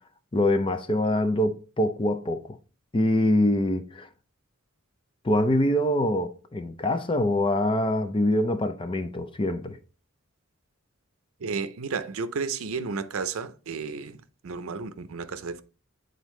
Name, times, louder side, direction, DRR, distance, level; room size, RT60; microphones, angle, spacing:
voice 1, 0.3-2.4 2.9-4.1 5.2-9.8, left 1 dB, 25° left, 0.5 m, -24 dB
voice 2, 11.4-15.6, right 5 dB, 80° right, 0.6 m, -32 dB
9.0 x 3.9 x 3.1 m
head